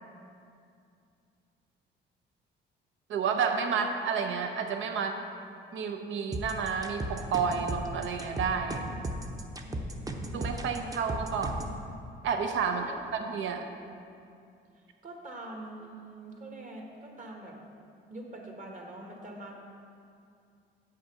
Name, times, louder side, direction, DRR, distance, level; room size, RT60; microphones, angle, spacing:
voice 1, 3.1-5.2 5.7-8.8 10.3-11.6 12.2-13.7, right 6 dB, 75° right, 5 dB, 0.8 m, -30 dB
sound 1, 6.3-11.8, right 1 dB, 20° right, 0.7 m, -35 dB
voice 2, 9.6-10.5 12.7-13.0 15.0-17.6 18.1-19.6, right 2 dB, 40° right, 0 dB, 1.7 m, -44 dB
7.6 x 6.2 x 5.5 m, 2.4 s
cardioid pair, 90°, 20 cm